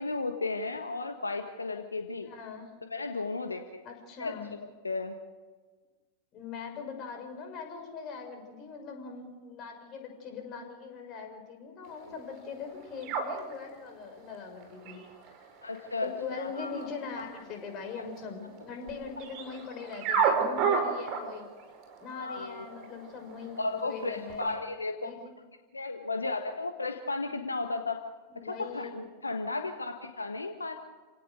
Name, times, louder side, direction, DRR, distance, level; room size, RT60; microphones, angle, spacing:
voice 1, 0.0-2.3 2.9-3.8 4.2-4.6 4.8-5.2 15.6-16.9 17.1-17.2 22.1-22.7 23.6-25.1 25.7-28.0 28.4-30.7, left 3 dB, 80° left, 6 dB, 1.4 m, -34 dB
voice 2, 2.2-2.7 3.8-4.5 6.3-15.1 16.0-21.5 22.0-24.6 25.0-25.3 28.3-29.0, left 5 dB, 35° left, 4 dB, 6.5 m, -41 dB
sound 1, 11.8-24.6, right 6 dB, 40° right, 5.2 m, -35 dB
29.5 x 18.0 x 6.6 m, 1.4 s
figure-of-eight pair, 90°, 0 cm